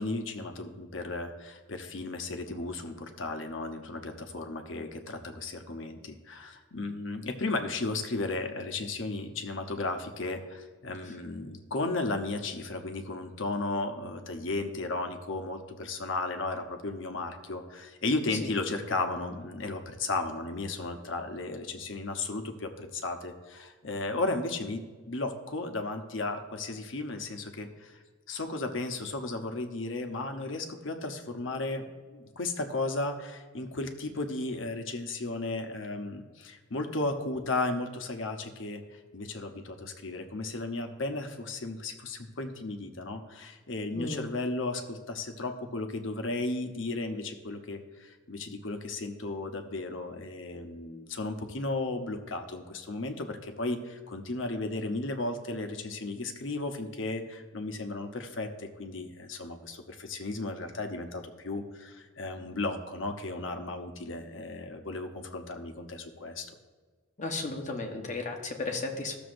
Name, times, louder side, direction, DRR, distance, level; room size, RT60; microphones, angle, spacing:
voice 1, 0.0-24.8 25.1-28.0 28.3-38.8 39.1-66.5, left 2 dB, 75° left, 6 dB, 0.9 m, -34 dB
voice 2, 43.9-44.3 67.2-69.2, left 3 dB, 35° left, 2 dB, 1.0 m, -34 dB
14.5 x 6.9 x 2.6 m, 1.4 s
head